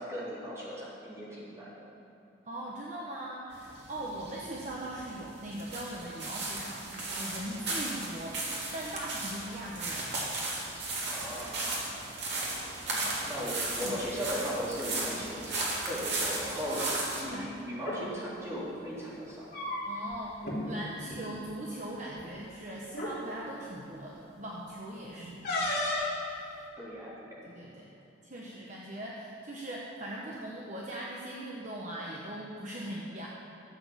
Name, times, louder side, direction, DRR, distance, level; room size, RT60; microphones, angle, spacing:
voice 1, 0.0-1.9 11.0-11.8 13.2-16.8 17.2-19.5 25.1-25.4 26.8-27.4, equal, 15° right, -8 dB, 3.7 m, -38 dB
voice 2, 2.4-10.2 12.8-13.2 13.8-14.0 16.7-16.9 17.3-17.5 19.9-25.8 27.4-27.9 28.2-33.3, right 1 dB, 40° right, -4 dB, 1.2 m, -40 dB
sound 1, 3.5-17.2, right 2 dB, 55° right, 2.8 m, -35 dB
sound 2, 17.7-18.0 19.2-20.1 20.4-20.6 21.0-21.2 22.2-22.3 22.9-23.2 25.4-26.2, left 1 dB, 50° left, 3.3 m, -32 dB
14.0 x 8.0 x 7.3 m, 2.8 s
head